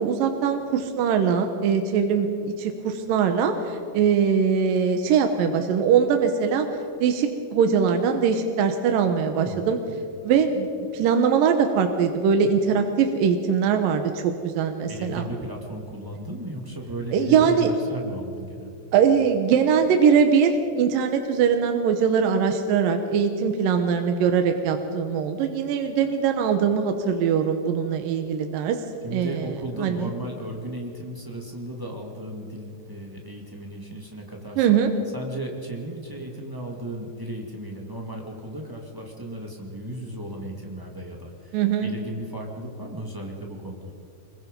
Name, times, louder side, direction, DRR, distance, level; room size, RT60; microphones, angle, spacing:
voice 1, 0.0-6.7 7.0-9.8 10.2-15.2 17.1-17.7 18.9-28.8 29.1-29.5 29.8-30.1 34.6-34.9 41.5-41.9, right 7 dB, 70° right, 6 dB, 2.5 m, -22 dB
voice 2, 9.3-9.7 14.9-18.8 29.0-34.7 35.1-43.9, right 1 dB, 25° right, -1 dB, 0.4 m, -35 dB
25.0 x 22.0 x 5.3 m, 2.5 s
omnidirectional pair, 4.6 m